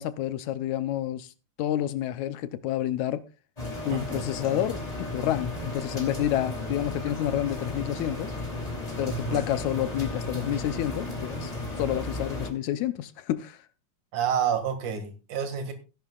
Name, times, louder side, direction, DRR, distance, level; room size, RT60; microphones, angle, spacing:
voice 1, 0.0-1.3 1.6-3.3 3.9-8.3 9.0-13.6, left 12 dB, 80° left, 2.1 m, -29 dB
sound 1, 3.6-12.5, left 2 dB, 15° left, 2.7 m, -34 dB
voice 2, 3.9-4.2 9.1-9.4 14.1-15.7, right 8 dB, 85° right, 3.3 m, -29 dB
18.0 x 11.0 x 2.3 m
omnidirectional pair, 3.3 m